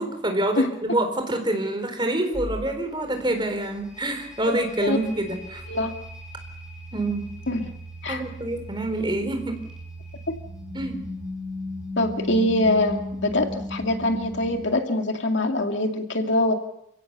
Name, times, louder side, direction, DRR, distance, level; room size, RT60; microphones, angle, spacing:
voice 1, 0.0-5.6 6.9-7.3 8.1-9.6 10.7-11.0, right 1 dB, 25° right, 5 dB, 4.2 m, -26 dB
sound 1, 2.3-14.6, left 1 dB, 5° right, 6.1 m, -37 dB
voice 2, 12.0-16.5, left 1 dB, 70° left, 4 dB, 2.3 m, -24 dB
29.5 x 17.0 x 7.0 m, 0.80 s
head